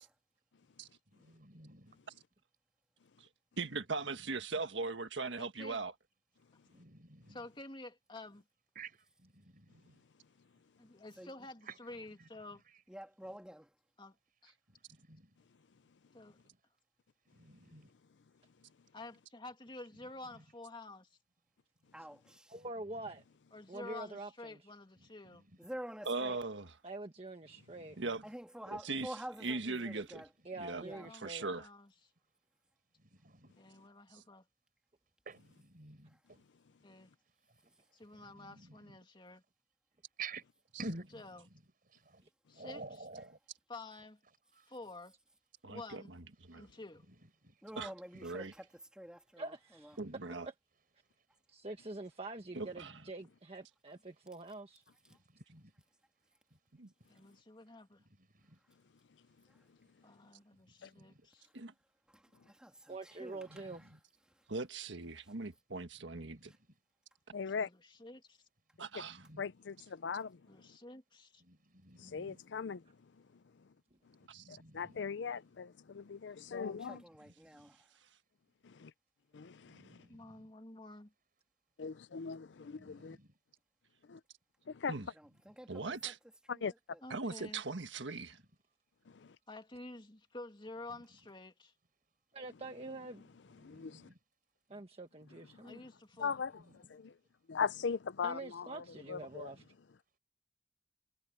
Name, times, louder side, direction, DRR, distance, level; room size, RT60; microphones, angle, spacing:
voice 1, 1.1-2.0 4.2-4.6 6.7-7.4 8.8-10.0 11.7-11.8 14.9-15.3 17.3-17.9 20.3-20.4 25.0-25.5 27.5-28.2 30.8-31.0 33.0-33.6 35.3-36.4 38.1-39.0 40.2-40.4 40.8-41.5 41.9-42.2 42.6-43.4 47.1-47.2 47.4-47.5 50.0-50.2 52.9-53.1 55.3-55.7 58.1-58.6 60.8-61.2 63.5-64.0 66.3-66.6 69.0-69.5 71.4-72.4 74.2-75.1 77.2-77.7 79.6-80.5 82.8-83.3 85.7-86.1 90.9-91.0 93.6-94.2 96.2-96.3 96.6-96.8 99.1-99.7, right 3 dB, 50° right, 5.3 m, -52 dB
voice 2, 3.6-5.9 26.0-26.7 28.0-28.2 28.7-30.2 30.6-30.8 31.1-31.6 45.6-46.0 46.5-46.7 47.8-47.9 48.2-48.5 50.0-50.4 52.5-52.9 56.8-56.9 61.5-61.7 64.5-66.4 68.8-69.2 74.3-74.4 84.9-85.1 85.7-86.2 87.1-88.4, right 3 dB, 85° right, 1.5 m, -39 dB
voice 3, 5.3-5.8 7.3-8.4 10.8-12.6 14.0-14.1 14.4-14.5 16.1-16.4 18.9-21.1 23.5-25.4 30.9-31.9 33.6-34.4 36.8-37.1 37.9-39.4 41.1-41.4 42.5-43.0 43.7-44.2 44.7-45.1 45.6-46.1 46.5-47.1 57.1-58.0 60.0-61.5 67.3-68.4 70.5-71.4 76.4-77.0 80.1-81.1 87.0-87.6 89.5-91.7 95.6-96.4, left 2 dB, 25° left, 2.5 m, -50 dB
voice 4, 12.9-13.7 21.9-22.5 25.6-26.4 28.2-30.3 30.8-31.1 47.6-48.7 48.9-49.5 49.8-49.9 62.1-63.5 76.6-77.8 85.2-86.1 86.5-87.0, equal, 5° right, 2.7 m, -48 dB
voice 5, 22.5-23.2 23.7-24.6 26.8-28.0 30.4-31.5 42.2-42.3 49.4-50.0 50.4-50.5 51.5-54.8 62.9-63.8 92.3-93.2 94.7-95.8 98.2-99.6, right 2 dB, 35° right, 1.5 m, -45 dB
voice 6, 67.3-67.7 69.4-70.4 72.0-72.8 74.7-77.0 78.6-78.9 79.3-80.0 81.8-83.2 84.1-84.2 84.7-85.0 86.5-86.7 89.2-89.3 93.6-94.1 95.6-95.7 96.2-96.5 96.9-97.1 97.5-99.5, left 6 dB, 75° left, 0.5 m, -39 dB
head